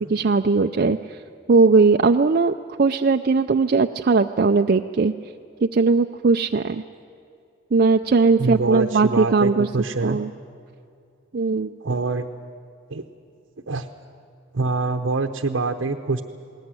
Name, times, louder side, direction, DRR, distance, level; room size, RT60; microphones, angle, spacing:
voice 1, 0.1-1.2 1.5-5.1 5.6-6.8 7.7-9.7 10.0-10.3 11.3-11.7, right 4 dB, 50° right, 6 dB, 0.5 m, -19 dB
voice 2, 8.4-10.2 11.8-12.3 12.9-13.0 13.7-13.9 14.5-16.2, right 3 dB, 80° right, 5 dB, 0.9 m, -25 dB
20.5 x 19.0 x 9.7 m, 2.5 s
head